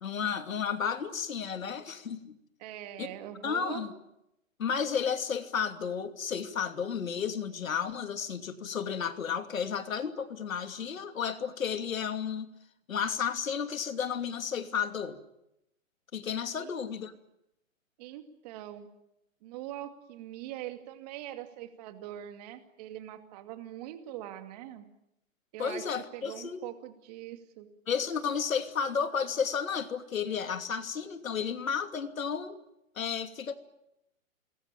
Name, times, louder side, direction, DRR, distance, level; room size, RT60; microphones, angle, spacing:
voice 1, 0.0-2.3 3.0-3.1 3.4-3.9 4.6-12.5 12.9-15.2 16.1-17.1 25.6-26.6 27.9-32.6 33.0-33.6, left 7 dB, 75° left, 8 dB, 2.8 m, -32 dB
voice 2, 2.6-3.8 16.6-16.8 18.0-18.9 19.4-24.9 25.5-25.9 26.1-27.7, right 12 dB, 30° right, 7 dB, 2.5 m, -42 dB
27.0 x 22.0 x 9.0 m, 0.85 s
hypercardioid pair, 160°, 40 cm